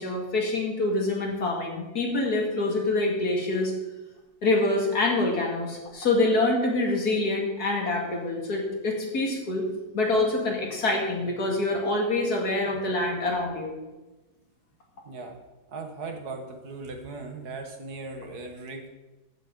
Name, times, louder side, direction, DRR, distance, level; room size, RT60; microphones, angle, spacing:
voice 1, 0.0-3.7 4.4-9.6 9.9-13.7, left 2 dB, 70° left, 0 dB, 2.7 m, -26 dB
voice 2, 15.1-15.4 15.7-18.9, right 3 dB, 75° right, 4 dB, 1.9 m, -38 dB
15.5 x 8.1 x 3.9 m, 1.1 s
omnidirectional pair, 1.7 m